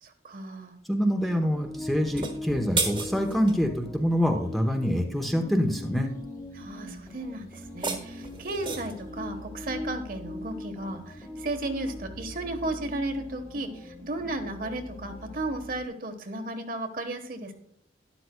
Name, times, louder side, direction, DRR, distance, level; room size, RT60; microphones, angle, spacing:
voice 1, 0.0-0.8 6.5-17.5, right 2 dB, 50° right, 6 dB, 1.2 m, -34 dB
voice 2, 0.9-6.1, equal, ahead, 3 dB, 0.8 m, -26 dB
sound 1, 1.1-15.8, left 1 dB, 15° left, 1.3 m, -41 dB
sound 2, 2.0-3.6 7.6-9.1, right 4 dB, 30° right, 1.3 m, -32 dB
12.5 x 11.0 x 2.2 m, 0.69 s
head